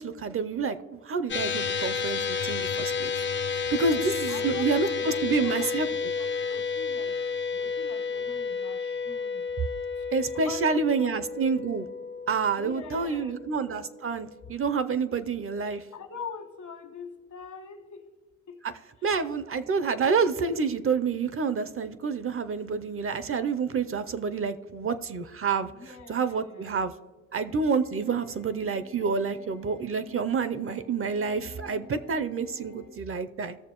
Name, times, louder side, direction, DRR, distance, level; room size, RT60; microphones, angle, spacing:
voice 1, 0.0-3.1 3.5-5.9 10.1-11.9 12.3-15.8 19.0-25.7 26.1-26.9 27.3-33.6, right 5 dB, 45° right, 12 dB, 0.5 m, -28 dB
sound 1, 1.3-13.8, left 5 dB, 35° left, 0.5 m, -31 dB
voice 2, 4.3-7.2 7.5-9.4 10.4-11.2 12.5-13.5 15.9-18.1 18.5-18.6 19.0-19.1 25.7-26.9, left 6 dB, 65° left, 6 dB, 1.5 m, -43 dB
sound 2, 27.4-33.0, left 4 dB, 85° left, 1.5 m, -50 dB
17.5 x 6.8 x 3.0 m, 1.3 s
cardioid pair, 110°, 32 cm